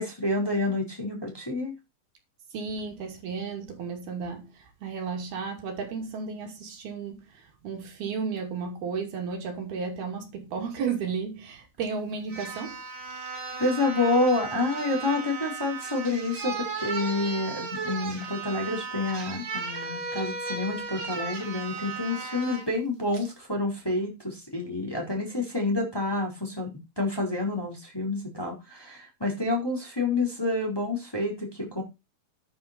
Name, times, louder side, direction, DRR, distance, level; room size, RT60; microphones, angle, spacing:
voice 1, 0.0-1.7 13.6-31.8, left 2 dB, 5° left, 4.0 m, -28 dB
voice 2, 2.5-4.5 4.8-7.2 7.6-12.8, right 5 dB, 70° right, 4.4 m, -33 dB
sound 1, 11.8-11.9 12.3-22.7 23.1-23.3, right 4 dB, 35° right, 2.3 m, -35 dB
11.0 x 9.4 x 4.5 m
omnidirectional pair, 4.6 m